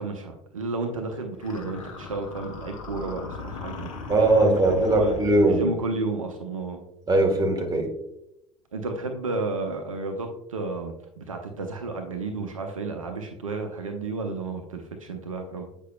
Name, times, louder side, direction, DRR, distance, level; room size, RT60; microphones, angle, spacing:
voice 1, 0.0-4.0 4.4-5.1 5.4-6.9 8.7-15.7, right 3 dB, 80° right, 4 dB, 0.6 m, -32 dB
sound 1, 1.4-5.8, left 4 dB, 80° left, 0.9 m, -38 dB
voice 2, 4.1-5.6 7.1-7.9, right 2 dB, 25° right, 2 dB, 1.4 m, -20 dB
8.2 x 5.2 x 2.2 m, 0.82 s
figure-of-eight pair, 65°, 17 cm